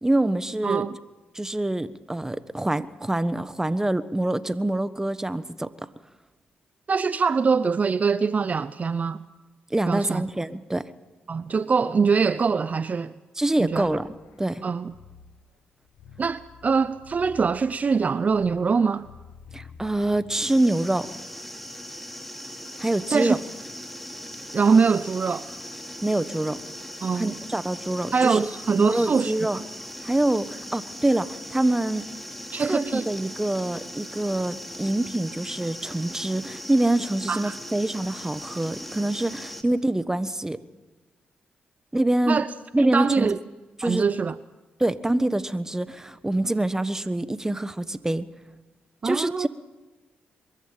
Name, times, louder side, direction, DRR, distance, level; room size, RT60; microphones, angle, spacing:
voice 1, 0.0-0.9 1.3-5.7 9.7-10.9 13.4-14.1 14.4-14.6 19.5-21.1 22.8-23.4 26.0-26.6 27.1-28.5 28.8-29.6 30.0-32.1 32.6-40.6 41.9-42.4 42.7-43.4 43.8-44.0 44.8-48.3 49.0-49.5, right 1 dB, 15° right, 1.3 m, -25 dB
voice 2, 0.6-1.0 6.9-9.2 9.9-10.2 11.3-13.1 13.6-13.9 14.6-14.9 16.2-19.1 23.1-23.4 24.5-25.5 27.0-27.4 28.1-29.6 32.5-33.1 37.3-37.5 42.3-42.5 42.8-43.4 43.8-44.3 49.0-49.5, right 5 dB, 45° right, 0.6 m, -23 dB
sound 1, 13.7-20.6, left 6 dB, 85° left, 1.4 m, -49 dB
sound 2, 20.3-39.6, equal, 5° left, 2.7 m, -39 dB
22.5 x 14.5 x 9.0 m
supercardioid pair, 55°, 4 cm